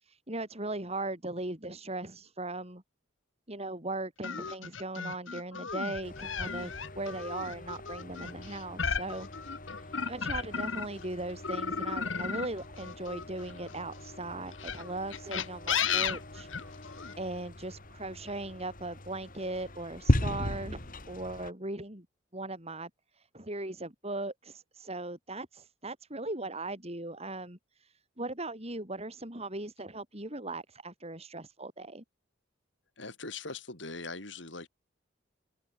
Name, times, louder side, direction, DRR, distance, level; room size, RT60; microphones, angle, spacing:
voice 1, 0.0-2.8 3.5-9.3 9.8-16.5 16.8-22.1 22.3-32.0, right 2 dB, 35° right, 6.9 m, -39 dB
sound 1, 4.2-11.0 11.4-13.8 14.5-17.1, left 6 dB, 80° left, 2.0 m, -34 dB
sound 2, 6.0-21.5, left 1 dB, 45° left, 4.2 m, -38 dB
voice 2, 33.0-34.7, left 3 dB, 65° left, 6.2 m, -41 dB
head